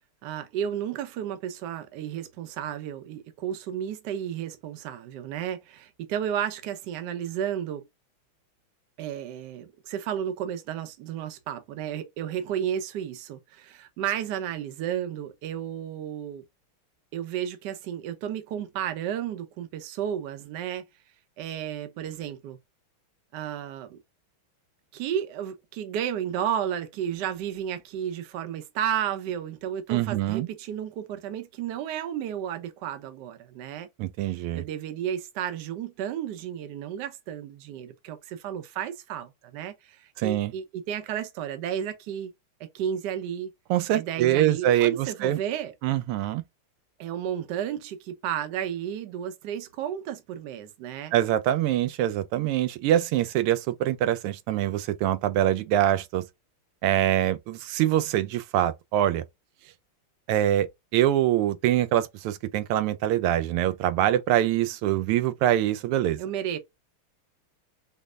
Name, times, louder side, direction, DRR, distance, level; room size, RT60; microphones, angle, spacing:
voice 1, 0.2-7.8 9.0-16.4 17.1-20.9 21.4-22.6 23.3-24.0 24.9-33.9 34.2-42.3 42.6-43.5 43.9-45.7 47.0-51.1 66.2-66.6, right 9 dB, 65° right, 1.2 m, -32 dB
voice 2, 29.9-30.5 34.0-34.6 40.2-40.5 43.7-45.4 45.8-46.4 51.1-56.3 56.8-59.2 60.3-66.2, right 12 dB, 90° right, 1.5 m, -24 dB
5.3 x 2.0 x 2.3 m
omnidirectional pair, 2.4 m